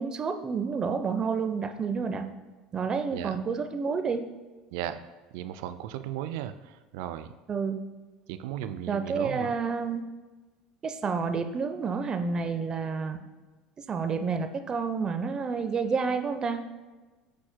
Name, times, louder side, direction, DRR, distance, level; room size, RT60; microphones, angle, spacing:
voice 1, 0.0-2.3 2.7-4.2 7.5-7.8 8.9-10.0 10.8-13.2 13.9-16.6, right 5 dB, 35° right, 7 dB, 0.6 m, -29 dB
voice 2, 5.3-7.3 8.3-9.5, right 11 dB, 70° right, 11 dB, 0.4 m, -36 dB
11.5 x 4.3 x 2.2 m, 1.3 s
hypercardioid pair, 75°, 2 cm